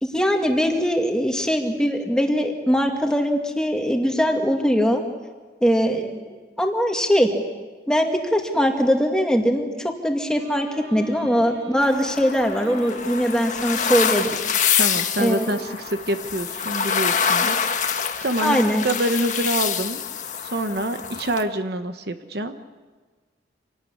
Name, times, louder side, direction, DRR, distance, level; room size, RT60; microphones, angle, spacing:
voice 1, 0.0-5.0 5.6-7.3 7.9-14.3 15.2-15.6 18.4-18.8, equal, 5° left, 2 dB, 2.1 m, -21 dB
Bowed string instrument, 10.3-16.6, equal, 85° right, 5.5 m, -42 dB
sound 1, 11.8-21.4, left 7 dB, 40° left, 1.5 m, -26 dB
voice 2, 14.8-17.6 18.2-20.0 20.5-22.6, right 1 dB, 55° right, 8 dB, 1.2 m, -26 dB
27.0 x 18.0 x 9.8 m, 1.4 s
head